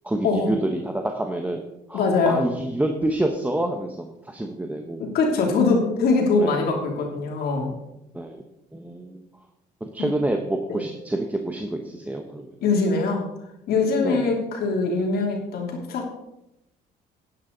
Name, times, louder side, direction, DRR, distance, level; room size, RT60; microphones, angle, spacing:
voice 1, 0.0-1.6 1.9-5.0 6.4-6.6 8.1-8.4 8.7-9.2 9.8-12.5 14.0-14.3, right 1 dB, 10° right, 3 dB, 1.0 m, -27 dB
voice 2, 1.9-2.4 5.1-7.7 10.7-10.8 12.6-13.2 13.7-16.1, left 4 dB, 65° left, 0 dB, 3.0 m, -22 dB
11.5 x 9.9 x 4.0 m, 0.87 s
cardioid pair, 110°, 17 cm